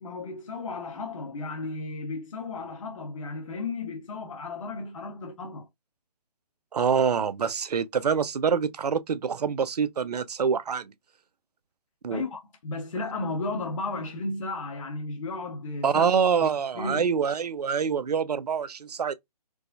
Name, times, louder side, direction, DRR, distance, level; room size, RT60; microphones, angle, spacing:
voice 1, 0.0-5.7 12.1-16.1 16.7-17.1, left 3 dB, 50° left, 0.9 m, -34 dB
voice 2, 6.7-10.9 12.0-12.2 15.8-19.1, right 6 dB, 70° right, 0.5 m, -25 dB
4.6 x 2.1 x 2.6 m
figure-of-eight pair, 150°, 21 cm